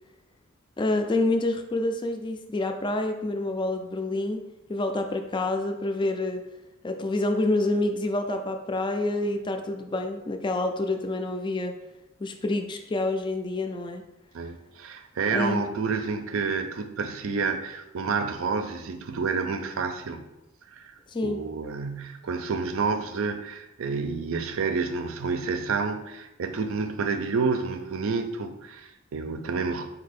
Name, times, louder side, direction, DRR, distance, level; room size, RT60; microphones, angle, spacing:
voice 1, 0.8-4.4 4.7-6.4 6.8-11.7 12.2-14.0 15.3-15.6 21.1-21.4, left 2 dB, 25° left, 5 dB, 0.3 m, -27 dB
voice 2, 14.3-20.3 20.7-20.9 21.2-29.9, right 4 dB, 75° right, 8 dB, 0.5 m, -29 dB
4.5 x 2.8 x 4.2 m, 0.95 s
head